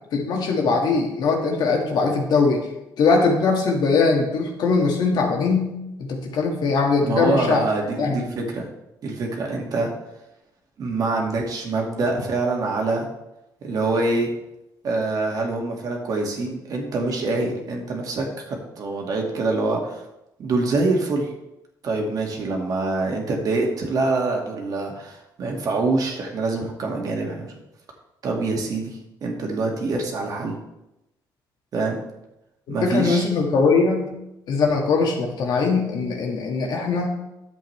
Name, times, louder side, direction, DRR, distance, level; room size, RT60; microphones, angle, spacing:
voice 1, 0.1-2.6 3.0-7.6 8.0-8.2 32.8-34.1 34.5-37.1, left 4 dB, 65° left, 1 dB, 1.9 m, -21 dB
voice 2, 7.0-8.7 9.0-9.9 10.8-13.1 13.6-14.3 14.8-20.0 20.4-21.3 21.8-27.5 28.2-30.5 31.7-32.0 32.7-33.3, right 3 dB, 50° right, 1 dB, 1.9 m, -25 dB
11.0 x 7.6 x 3.3 m, 0.91 s
cardioid pair, 120°, 8 cm